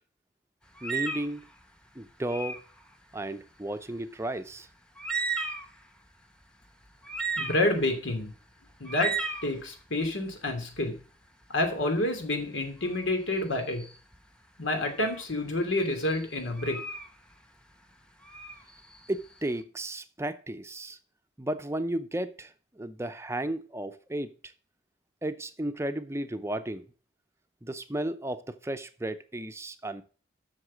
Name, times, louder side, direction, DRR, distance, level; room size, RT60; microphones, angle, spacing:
sound 1, 0.8-1.4 2.2-2.7 4.6-4.7 5.0-5.8 6.4-6.5 7.0-7.9 8.9-9.5 12.8-13.1 13.8-14.2 14.8-15.2 15.8-17.1 18.2-19.3, right 4 dB, 5° left, 0.9 m, -34 dB
voice 1, 0.8-1.5 2.0-2.6 3.1-4.7 19.1-21.0 21.4-24.3 25.2-26.9 27.6-30.0, right 1 dB, 15° right, 0.6 m, -34 dB
voice 2, 7.4-8.3 8.8-9.1 9.4-11.0 11.5-13.8 14.6-16.8, left 1 dB, 90° left, 2.9 m, -28 dB
8.0 x 6.7 x 7.4 m
head